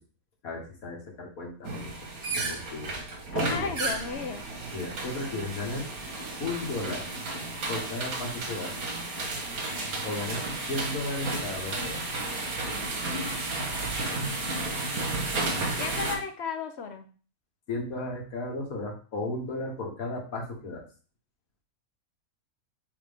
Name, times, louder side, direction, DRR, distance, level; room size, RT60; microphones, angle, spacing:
voice 1, 0.4-1.9 2.4-2.9 3.3-3.7 4.7-5.9 6.4-7.1 7.7-8.7 10.0-12.0 17.7-20.8, left 2 dB, 80° left, 0 dB, 1.9 m, -34 dB
sound 1, 1.6-16.2, right 2 dB, 85° right, 1.8 m, -33 dB
voice 2, 3.3-4.4 14.1-14.7 15.8-17.1, left 5 dB, 55° left, 7 dB, 1.0 m, -35 dB
8.8 x 3.2 x 3.5 m, 0.38 s
omnidirectional pair, 1.5 m